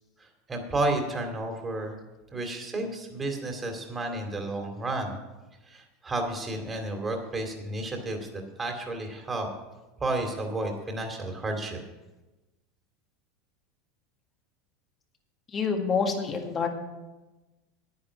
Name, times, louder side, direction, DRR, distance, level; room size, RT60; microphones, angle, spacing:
voice 1, 0.2-2.0 2.3-5.2 5.7-9.5 10.0-11.8, right 2 dB, 20° right, 3 dB, 2.4 m, -32 dB
voice 2, 15.5-16.7, left 5 dB, 30° left, 4 dB, 1.8 m, -27 dB
10.0 x 9.6 x 6.2 m, 1.1 s
supercardioid pair, 125°, 0 cm